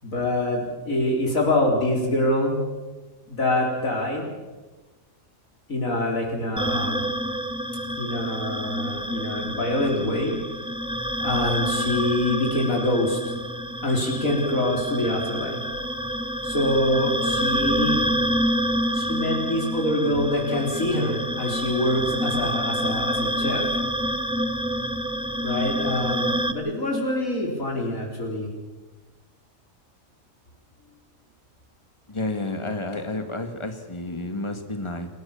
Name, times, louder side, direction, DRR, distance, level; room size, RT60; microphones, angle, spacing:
voice 1, 0.0-2.6 3.3-4.3 5.7-7.1 8.0-10.3 11.2-13.2 13.8-15.6 16.4-18.0 18.9-23.6 25.4-28.5, left 1 dB, 90° left, -1 dB, 4.7 m, -25 dB
sound 1, 6.6-26.5, equal, 5° right, 1.0 m, -27 dB
voice 2, 32.1-35.1, left 2 dB, 20° left, 7 dB, 2.1 m, -30 dB
29.0 x 17.5 x 7.2 m, 1.2 s
omnidirectional pair, 1.4 m